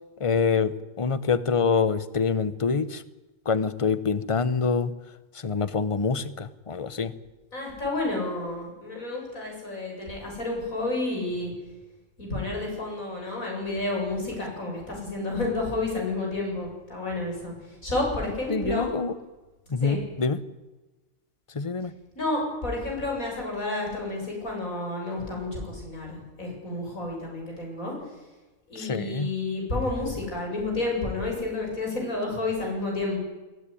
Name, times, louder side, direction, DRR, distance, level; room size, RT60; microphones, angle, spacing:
voice 1, 0.2-3.0 3.4-4.9 5.3-7.1 18.5-19.1 19.7-20.4 21.5-21.9 28.8-29.3, left 5 dB, 25° left, 14 dB, 0.9 m, -26 dB
voice 2, 7.5-11.5 12.2-18.9 19.8-20.0 22.1-27.9 28.7-33.2, left 2 dB, 90° left, 0 dB, 8.2 m, -30 dB
21.5 x 17.0 x 10.0 m, 1.2 s
omnidirectional pair, 1.4 m